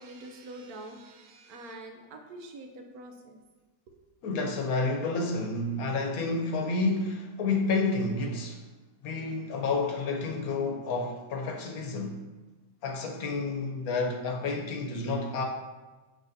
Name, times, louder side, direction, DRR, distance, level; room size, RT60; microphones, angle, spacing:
voice 1, 0.0-3.4, right 1 dB, 75° right, 4 dB, 1.3 m, -45 dB
voice 2, 4.2-8.6 9.0-12.2 12.8-15.4, left 3 dB, 70° left, 2 dB, 1.3 m, -30 dB
6.3 x 6.2 x 2.7 m, 1.2 s
omnidirectional pair, 1.6 m